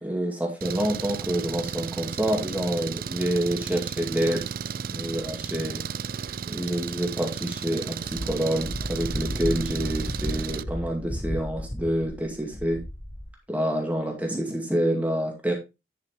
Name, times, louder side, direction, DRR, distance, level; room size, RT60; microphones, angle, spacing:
voice 1, 0.0-4.4 4.9-5.8 6.5-12.8 13.5-15.5, right 1 dB, 10° right, 0 dB, 2.2 m, -27 dB
Engine, 0.6-10.6, right 7 dB, 55° right, 0.4 m, -34 dB
Wind, 8.0-13.3, equal, 20° left, 1.1 m, -33 dB
10.5 x 5.7 x 3.7 m, 0.25 s
head